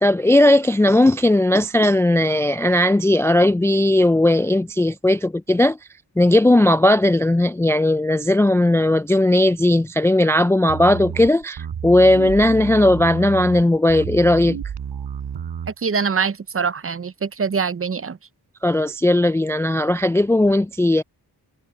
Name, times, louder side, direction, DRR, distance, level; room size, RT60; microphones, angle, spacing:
voice 1, 0.0-5.8 6.2-14.6 18.6-21.0, left 1 dB, 5° left, 0.3 m, -17 dB
sound 1, 10.7-15.7, right 8 dB, 90° right, 4.6 m, -30 dB
voice 2, 15.7-18.2, right 5 dB, 35° right, 0.7 m, -24 dB
cardioid pair, 55°, 40 cm